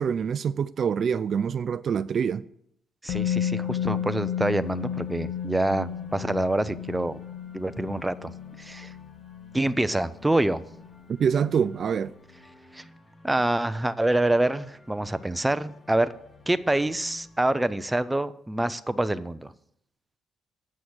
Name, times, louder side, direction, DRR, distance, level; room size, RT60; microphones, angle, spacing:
voice 1, 0.0-2.4 11.1-12.1, right 7 dB, 55° right, 0.3 m, -25 dB
voice 2, 3.0-7.2 7.5-8.3 8.6-8.9 9.5-10.6 12.7-12.8 13.2-16.1 16.5-19.5, right 1 dB, 10° right, 0.6 m, -26 dB
Musical instrument, 3.1-11.0 11.3-11.4, left 9 dB, 80° left, 0.9 m, -33 dB
sound 1, 3.5-18.0, left 1 dB, 30° left, 1.7 m, -54 dB
8.5 x 6.3 x 7.8 m
cardioid pair, 90°, 0 cm